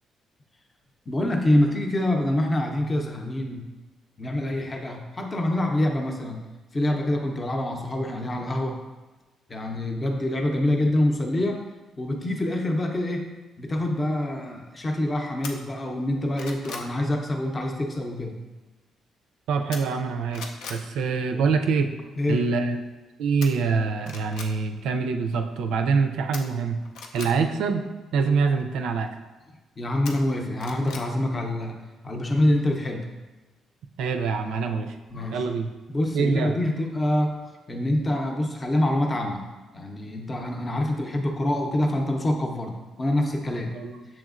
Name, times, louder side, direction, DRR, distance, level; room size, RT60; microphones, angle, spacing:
voice 1, 1.1-3.6 4.2-6.4 6.7-8.8 9.5-11.6 12.0-18.3 22.2-22.5 29.8-31.8 32.0-33.1 35.1-35.5 35.9-37.3 37.7-39.5 39.7-43.7 44.1-44.2, left 1 dB, 30° left, 2 dB, 0.6 m, -26 dB
sound 1, 15.4-15.5 16.0-16.9 19.7-20.1 20.3-20.8 23.4-23.5 24.0-24.5 26.3-27.3 30.0-31.1 31.4-31.5, left 4 dB, 85° left, 0.5 m, -38 dB
voice 2, 19.5-20.4 20.7-21.9 22.3-22.8 23.2-26.8 27.1-27.9 28.1-29.1 34.0-34.9 35.3-35.7 36.1-36.5 43.7-44.0, right 5 dB, 85° right, 5 dB, 0.4 m, -25 dB
7.0 x 3.1 x 2.4 m, 1.2 s
cardioid pair, 90°, 0 cm